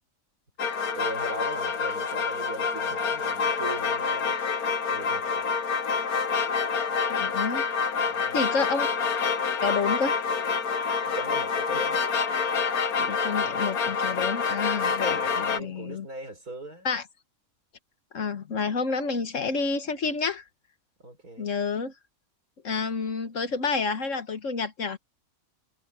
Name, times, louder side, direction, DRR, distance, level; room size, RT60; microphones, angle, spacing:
sound 1, 0.6-15.6, left 5 dB, 85° left, 1.9 m, -27 dB
voice 1, 0.9-4.4 4.9-5.3 8.0-8.4 11.0-12.0 15.2-16.9 21.0-21.5, right 1 dB, 90° right, 6.2 m, -39 dB
voice 2, 7.1-7.7 8.3-8.9 9.6-10.1 13.0-16.1 16.9-17.1 18.1-20.4 21.4-21.9 22.6-25.0, left 4 dB, 60° left, 1.7 m, -29 dB
omnidirectional pair, 1.5 m